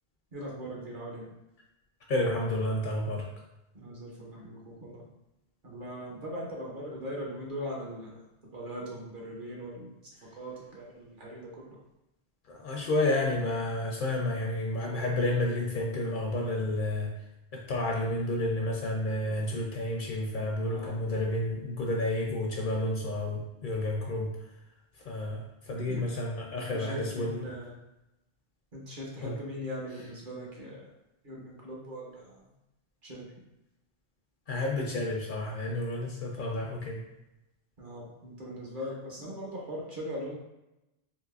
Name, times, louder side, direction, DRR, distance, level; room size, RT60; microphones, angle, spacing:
voice 1, 0.3-1.3 3.7-5.0 5.6-8.2 8.5-9.9 10.4-11.8 20.7-21.0 25.9-26.1 26.7-27.7 28.7-30.8 31.2-32.4 33.0-33.2 37.8-40.3, equal, 55° right, -3 dB, 1.0 m, -40 dB
voice 2, 2.1-3.2 12.5-17.1 17.5-24.3 25.1-25.4 25.7-27.5 29.2-29.3 34.5-37.0, left 1 dB, 60° left, 0 dB, 0.6 m, -30 dB
3.9 x 2.7 x 2.3 m, 0.92 s
omnidirectional pair, 1.1 m